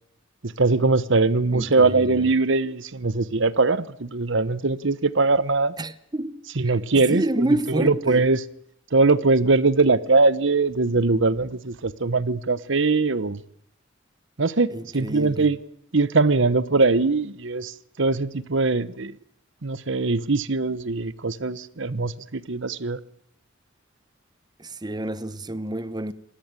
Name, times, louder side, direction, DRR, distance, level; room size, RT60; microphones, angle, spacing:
voice 1, 0.4-5.7 6.5-8.4 8.9-13.4 14.4-15.6 15.9-19.1 19.6-23.0, right 3 dB, 65° right, 1.0 m, -21 dB
voice 2, 1.5-2.2 5.8-6.7 7.1-8.2 14.7-15.5 24.6-26.1, right 1 dB, 20° right, 0.9 m, -28 dB
26.0 x 19.0 x 9.0 m
head